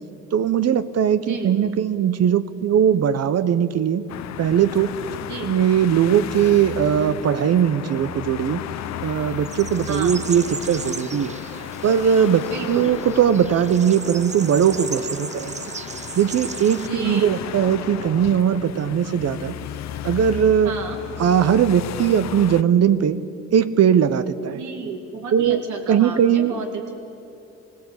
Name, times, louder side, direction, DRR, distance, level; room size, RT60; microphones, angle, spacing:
voice 1, 0.3-4.1 4.4-4.9 5.4-8.6 9.0-11.3 11.8-15.6 16.2-19.5 20.0-20.7 21.2-23.2 23.5-24.6 25.3-25.6 25.9-26.5, right 8 dB, 55° right, 13 dB, 0.8 m, -19 dB
voice 2, 1.2-1.6 5.3-5.5 9.9-10.2 12.5-12.9 16.7-17.4 20.6-21.0 24.5-27.0, right 5 dB, 75° right, 3 dB, 2.3 m, -32 dB
sound 1, 4.1-22.6, left 12 dB, 65° left, 0.7 m, -34 dB
sound 2, 9.0-16.9, right 5 dB, 25° right, 0.6 m, -36 dB
20.0 x 16.0 x 8.2 m, 2.9 s
cardioid pair, 90°, 30 cm